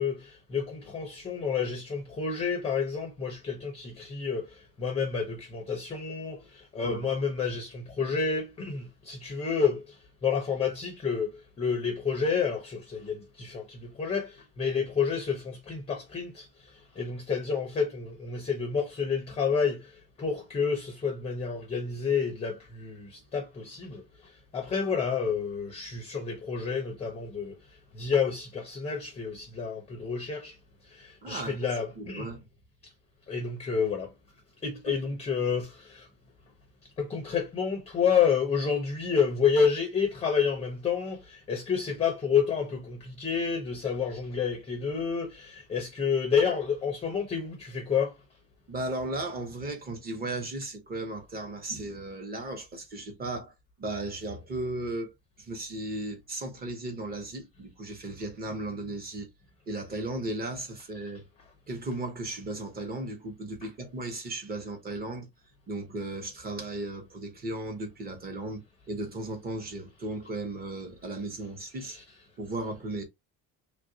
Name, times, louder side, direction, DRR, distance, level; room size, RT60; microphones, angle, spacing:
voice 1, 0.0-16.5 17.0-24.0 24.5-27.6 27.9-30.6 30.9-32.3 33.3-34.1 34.6-36.1 37.0-48.2 71.8-72.0, left 6 dB, 20° left, 0.5 m, -29 dB
voice 2, 31.2-31.6 32.0-32.5 34.9-35.0 48.7-55.1 55.4-59.3 59.7-61.3 61.7-65.3 65.7-72.0 72.4-73.0, right 2 dB, 25° right, 0.9 m, -36 dB
3.1 x 2.5 x 2.6 m
cardioid pair, 170°, 35 cm